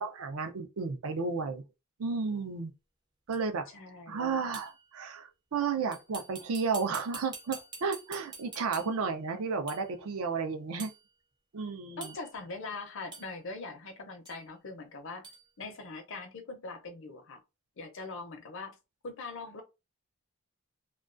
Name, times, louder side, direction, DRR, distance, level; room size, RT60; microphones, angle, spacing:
voice 1, 0.0-1.6 2.0-2.7 3.3-3.7 4.1-10.9 11.5-12.1, right 5 dB, 75° right, 0.5 m, -33 dB
sound 1, 3.3-3.4 4.5-4.8 5.9-9.1 9.7-10.0 10.8-11.0 12.0-12.4 13.1-13.4 14.2-14.4 15.2-15.4, right 3 dB, 20° right, 0.4 m, -46 dB
voice 2, 3.7-4.2 12.0-15.3 15.6-17.4 17.8-18.8 19.0-19.6, left 3 dB, 60° left, 0.5 m, -42 dB
2.3 x 2.2 x 2.4 m
head